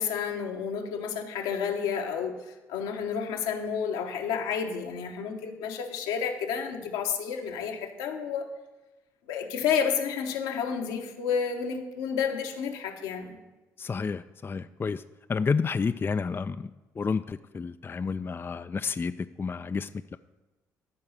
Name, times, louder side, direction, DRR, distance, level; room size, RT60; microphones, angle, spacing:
voice 1, 0.0-8.5 9.3-13.4, left 7 dB, 80° left, 3 dB, 1.1 m, -30 dB
voice 2, 13.8-15.0 15.3-16.7 17.0-20.2, left 5 dB, 30° left, 11 dB, 0.4 m, -30 dB
13.5 x 4.8 x 6.4 m, 1.2 s
hypercardioid pair, 50°, 8 cm